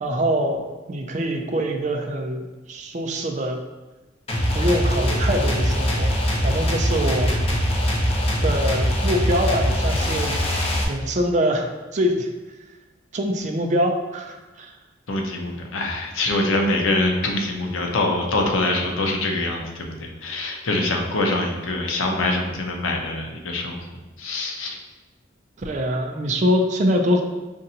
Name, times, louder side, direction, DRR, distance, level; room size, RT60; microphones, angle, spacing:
voice 1, 0.0-3.6 4.5-7.3 8.4-10.4 10.9-11.7 11.9-12.3 13.1-14.7 25.6-27.3, equal, 35° right, 3 dB, 0.4 m, -24 dB
sound 1, 4.3-10.8, equal, 30° left, 0.5 m, -22 dB
voice 2, 15.1-23.8 24.2-24.8, left 2 dB, 85° left, 1 dB, 0.7 m, -24 dB
5.2 x 2.5 x 2.8 m, 1.2 s
head